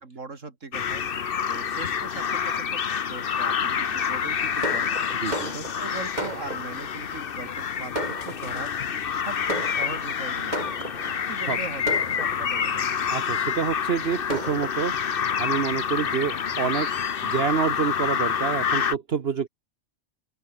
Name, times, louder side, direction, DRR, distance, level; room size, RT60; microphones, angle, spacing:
voice 1, 0.0-1.0 1.5-2.8 3.1-4.9 5.4-8.7 9.1-10.8 11.3-12.9, right 4 dB, 75° right, 3.0 m, -39 dB
sound 1, 0.7-19.0, left 7 dB, 50° left, 1.0 m, -28 dB
Fireworks, 4.6-7.0 7.6-7.7 7.9-8.8 9.5-11.3 11.9-12.8 13.5-13.6 13.9-14.0 14.3-14.7, right 1 dB, 35° right, 8.1 m, -34 dB
voice 2, 5.2-5.5 11.5-11.6 13.1-15.0 15.4-17.0 17.2-19.5, right 7 dB, 55° right, 1.3 m, -27 dB
open air
omnidirectional pair, 1.3 m